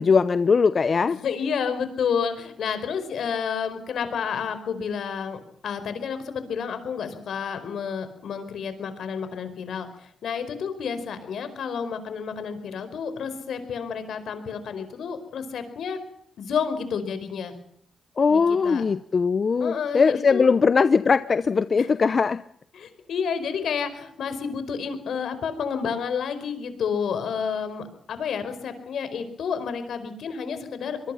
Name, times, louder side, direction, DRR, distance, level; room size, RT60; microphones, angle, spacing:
voice 1, 0.0-1.2 18.2-22.4, left 5 dB, 50° left, 14 dB, 0.8 m, -20 dB
voice 2, 1.2-16.0 16.4-17.5 18.3-18.8 19.6-20.5 21.8-21.9 22.7-31.1, left 6 dB, 80° left, 10 dB, 4.8 m, -30 dB
24.0 x 23.0 x 5.8 m, 0.66 s
cardioid pair, 65°, 0 cm